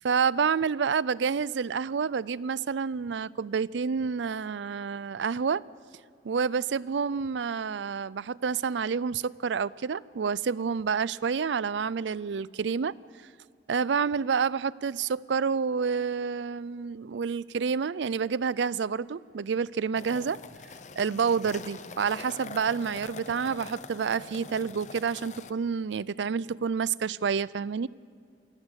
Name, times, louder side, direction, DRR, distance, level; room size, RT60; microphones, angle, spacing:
voice 1, 0.0-5.6 6.2-12.9 13.7-20.4 21.0-27.9, right 6 dB, 85° right, 21 dB, 0.4 m, -28 dB
sound 1, 20.0-25.5, left 4 dB, 40° left, 0.7 m, -44 dB
27.5 x 14.5 x 8.2 m, 2.2 s
head